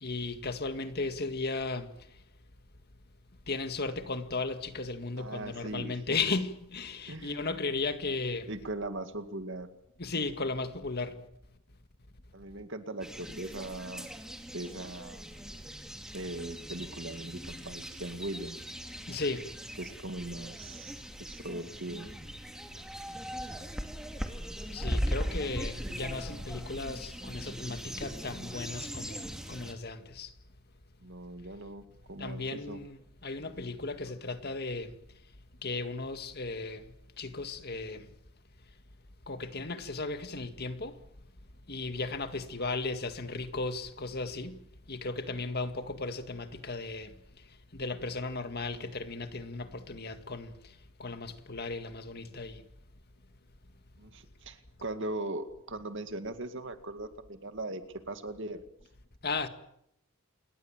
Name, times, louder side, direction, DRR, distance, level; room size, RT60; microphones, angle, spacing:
voice 1, 0.0-1.9 3.5-8.5 10.0-11.2 19.1-19.5 24.7-30.3 32.2-34.9 35.6-36.8 37.2-38.1 39.3-40.9 41.7-44.6 44.9-47.1 47.7-50.5 51.0-52.6 59.2-59.5, left 3 dB, 45° left, 2.0 m, -35 dB
voice 2, 5.2-6.0 7.1-7.4 8.5-9.7 12.3-14.2 14.5-15.5 16.1-18.6 19.8-22.1 31.0-31.8 32.1-32.8 54.0-57.8 58.1-58.6, right 2 dB, 55° right, 2.3 m, -39 dB
sound 1, 13.0-29.7, equal, 5° right, 2.5 m, -39 dB
27.5 x 22.0 x 7.5 m
head